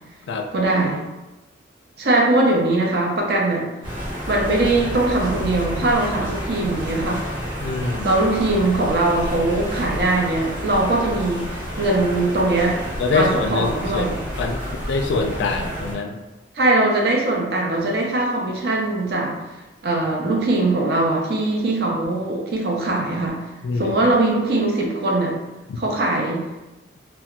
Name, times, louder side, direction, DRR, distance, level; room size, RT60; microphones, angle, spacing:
voice 1, 0.5-1.0 2.0-3.7 4.3-7.2 8.0-11.4 11.8-12.8 13.1-14.2 16.5-19.4 19.8-23.4 23.8-25.4 25.8-26.5, right 2 dB, 60° right, -1 dB, 0.5 m, -21 dB
sound 1, 3.8-15.9, equal, 25° right, 0.8 m, -30 dB
voice 2, 7.6-8.1 13.0-14.1 14.4-16.2 23.6-24.0 25.7-25.8, left 3 dB, 70° left, 4 dB, 0.3 m, -24 dB
2.7 x 2.1 x 2.3 m, 1.1 s
head